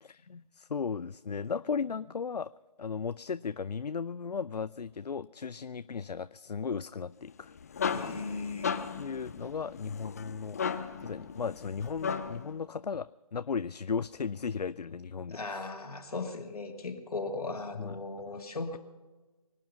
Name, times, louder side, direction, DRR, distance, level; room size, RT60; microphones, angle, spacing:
voice 1, 0.0-2.5 2.8-7.5 9.0-10.6 11.0-15.6 17.8-18.0, left 6 dB, 85° left, 16 dB, 0.4 m, -36 dB
sound 1, 7.3-12.5, left 6 dB, 25° left, 0.6 m, -36 dB
voice 2, 7.9-8.7 15.3-18.8, left 3 dB, 65° left, 4 dB, 2.2 m, -37 dB
24.0 x 8.5 x 5.5 m, 1.2 s
figure-of-eight pair, 150°, 20 cm